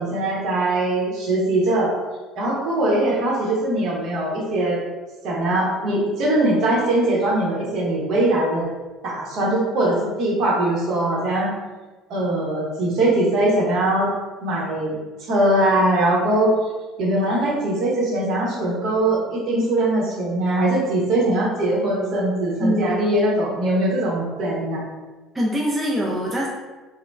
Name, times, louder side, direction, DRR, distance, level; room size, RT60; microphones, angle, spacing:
voice 1, 0.0-1.9 2.4-4.8 5.2-8.7 9.0-11.5 12.1-14.1 14.4-16.6 17.0-24.8, right 1 dB, 50° right, -4 dB, 0.8 m, -21 dB
voice 2, 22.6-23.0 25.3-26.5, equal, 15° right, -3 dB, 0.4 m, -23 dB
2.9 x 2.0 x 2.2 m, 1.2 s
figure-of-eight pair, 60°, 0 cm